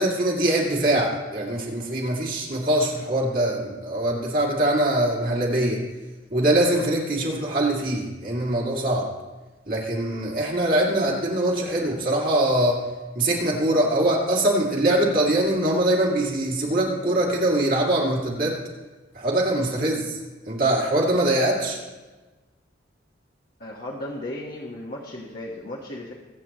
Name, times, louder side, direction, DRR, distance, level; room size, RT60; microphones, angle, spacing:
voice 1, 0.0-5.8 6.3-9.1 9.7-12.8 13.1-18.5 19.1-20.2 20.5-21.8, right 1 dB, 50° right, -3 dB, 2.5 m, -23 dB
voice 2, 23.6-26.1, left 1 dB, 50° left, -4 dB, 1.3 m, -35 dB
23.0 x 8.2 x 3.0 m, 1.2 s
head